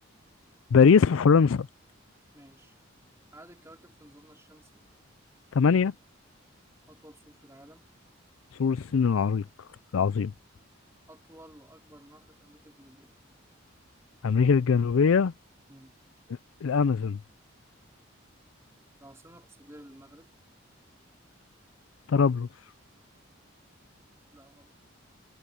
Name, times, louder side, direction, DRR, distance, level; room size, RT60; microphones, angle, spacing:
voice 1, 0.7-1.7 5.5-5.9 8.6-9.4 9.9-10.3 14.2-15.3 16.6-17.2 22.1-22.5, left 5 dB, 85° left, 0.4 m, -21 dB
voice 2, 2.3-2.8 3.3-4.8 6.9-7.9 11.1-13.1 15.7-15.9 19.0-20.3 24.3-24.7, right 1 dB, 15° right, 3.0 m, -53 dB
head